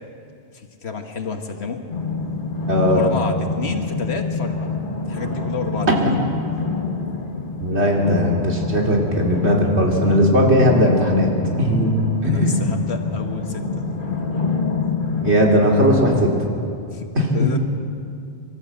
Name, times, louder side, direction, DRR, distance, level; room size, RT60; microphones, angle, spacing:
voice 1, 0.5-1.8 2.8-4.8 5.1-5.9 12.2-13.8 16.9-17.1 17.3-17.6, left 4 dB, 80° left, 5 dB, 1.7 m, -29 dB
sound 1, 1.9-16.2, left 4 dB, 50° left, 1.6 m, -26 dB
voice 2, 2.7-3.0 7.6-11.3 11.6-11.9 12.2-12.6 15.2-16.3 17.1-17.5, equal, 85° right, -1 dB, 3.1 m, -18 dB
24.5 x 13.5 x 7.9 m, 2.5 s
omnidirectional pair, 1.1 m